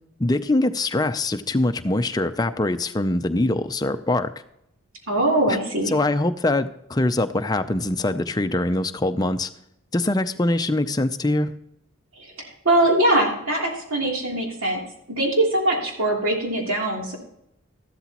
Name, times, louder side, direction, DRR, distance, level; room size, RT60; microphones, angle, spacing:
voice 1, 0.2-4.3 5.5-5.6 5.9-9.5 9.9-11.5, left 2 dB, 20° left, 8 dB, 0.5 m, -23 dB
voice 2, 5.1-5.9 12.6-14.8 15.2-17.2, right 1 dB, 85° right, -1 dB, 3.1 m, -21 dB
13.5 x 12.0 x 3.0 m, 0.79 s
head